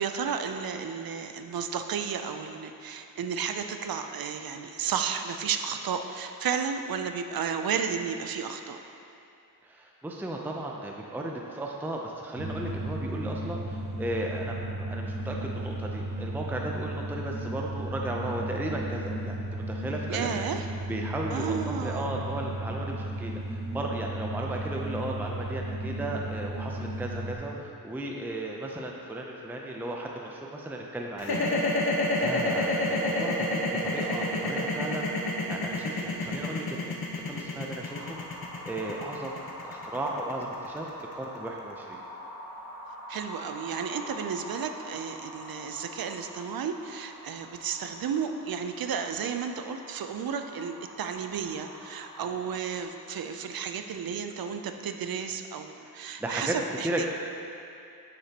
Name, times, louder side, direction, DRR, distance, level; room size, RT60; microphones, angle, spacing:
voice 1, 0.0-8.8 20.1-20.7 21.3-22.1 43.1-57.1, right 7 dB, 70° right, 7 dB, 0.5 m, -33 dB
voice 2, 9.6-20.4 20.9-31.4 32.2-38.4 38.7-40.9 41.1-42.0 52.2-52.4 56.2-56.5 56.8-57.1, right 1 dB, 5° right, -1 dB, 0.5 m, -35 dB
sound 1, 12.4-27.4, right 1 dB, 90° right, 1.5 m, -34 dB
sound 2, 31.2-41.4, left 2 dB, 80° left, 0.9 m, -28 dB
sound 3, 37.9-52.8, equal, 65° left, 1.6 m, -45 dB
9.2 x 6.7 x 2.9 m, 2.6 s
wide cardioid pair, 110°, 37 cm